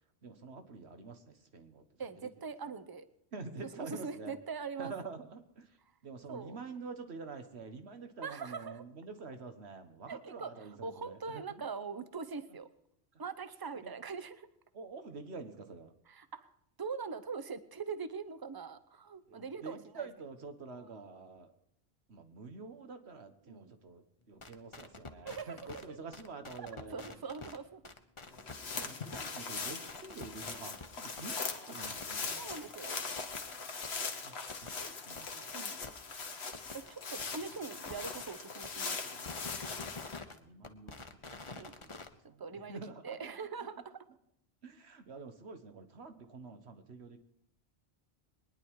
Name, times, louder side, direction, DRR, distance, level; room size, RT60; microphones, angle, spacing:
voice 1, 0.2-2.3 3.3-4.3 4.8-5.8 6.0-11.4 13.1-13.2 13.8-13.9 14.7-15.9 19.3-21.5 22.1-27.2 28.8-32.5 34.2-35.6 40.2-43.3 44.6-47.2, right 4 dB, 85° right, 8 dB, 1.6 m, -48 dB
voice 2, 2.0-3.0 3.8-4.9 6.3-6.6 8.2-8.8 10.1-10.5 10.8-12.7 13.2-14.5 16.1-16.5 16.8-20.1 23.5-23.7 25.2-26.0 26.6-27.9 32.4-33.0 35.5-35.8 36.7-39.0 41.6-41.7 42.4-42.8 43.0-44.0, right 5 dB, 25° right, 13 dB, 0.7 m, -42 dB
sound 1, 24.4-25.8 26.1-27.6 27.8-29.3 29.6-30.9 31.2-31.3 31.5-31.6 31.8-32.2 32.5-32.6 32.8-32.9 33.2-33.6 33.8-33.9 34.2-34.3 34.5-34.9 35.2-35.3 35.5-35.6 35.8-35.9 36.2-36.3 36.5-36.9 37.2-37.3 37.5-37.6 37.8-38.3 38.6-38.7 39.0-40.4 40.6-42.1, left 3 dB, 30° left, 1.0 m, -46 dB
sound 2, 28.3-40.2, left 4 dB, 80° left, 1.5 m, -41 dB
22.5 x 10.0 x 4.7 m, 0.76 s
omnidirectional pair, 1.1 m